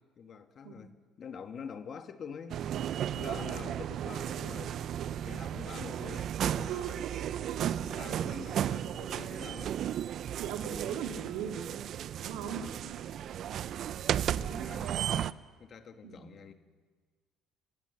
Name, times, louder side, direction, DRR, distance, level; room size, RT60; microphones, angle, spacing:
voice 1, 0.2-2.6 3.1-4.9 5.2-7.0 7.7-9.8 13.5-13.6 14.2-16.5, left 6 dB, 45° left, 7 dB, 1.8 m, -46 dB
sound 1, 2.5-15.3, right 10 dB, 55° right, 0.6 m, -34 dB
voice 2, 3.2-3.8 6.7-7.7 10.4-11.5 12.2-12.7 14.4-14.8 16.0-16.4, right 8 dB, 85° right, 3 dB, 2.9 m, -39 dB
27.5 x 17.5 x 7.1 m, 1.5 s
cardioid pair, 110°, 0 cm